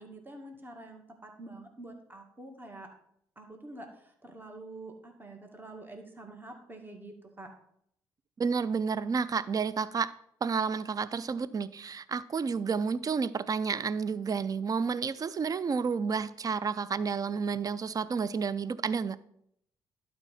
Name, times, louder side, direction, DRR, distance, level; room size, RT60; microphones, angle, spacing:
voice 1, 0.0-2.9 3.4-7.5, right 2 dB, 20° right, 2.1 m, -47 dB
voice 2, 8.4-10.1 10.4-19.2, right 5 dB, 35° right, 0.5 m, -30 dB
11.5 x 4.4 x 5.7 m
hypercardioid pair, 45°, 10 cm